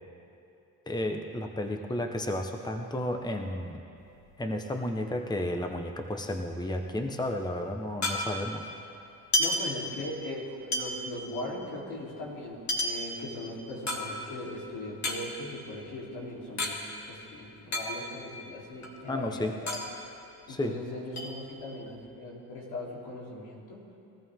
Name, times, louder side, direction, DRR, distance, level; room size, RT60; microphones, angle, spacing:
voice 1, 0.9-3.8 4.4-8.7 19.1-19.6 20.5-20.7, left 1 dB, 10° left, 4 dB, 1.1 m, -32 dB
sound 1, 4.0-5.7 6.0-6.1 6.3-8.7 9.1-10.3 10.7-14.5 14.9-16.8 17.0-17.1 17.4-18.3 18.7-20.8 21.2-22.0, left 1 dB, 45° left, 2.5 m, -33 dB
voice 2, 9.4-16.8 17.1-19.8 20.5-23.9, left 1 dB, 85° left, -4 dB, 3.8 m, -39 dB
22.0 x 14.0 x 3.7 m, 2.7 s
cardioid pair, 80°, 38 cm